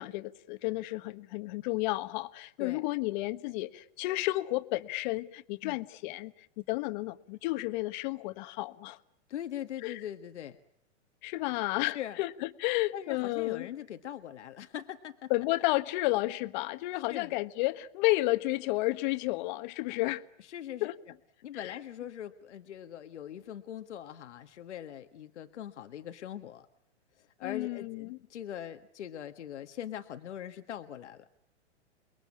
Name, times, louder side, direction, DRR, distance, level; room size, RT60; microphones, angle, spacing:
voice 1, 0.0-9.0 9.8-10.0 11.2-13.7 15.3-20.2 20.8-21.0 21.6-21.7 27.4-28.2, left 20 dB, 40° left, 1.4 m, -32 dB
voice 2, 9.3-10.6 11.8-12.2 12.9-15.3 16.9-17.4 19.9-20.0 20.4-20.9 21.4-26.7 27.2-31.3, left 10 dB, 80° left, 1.7 m, -41 dB
30.0 x 21.5 x 8.6 m
hypercardioid pair, 145°, 34 cm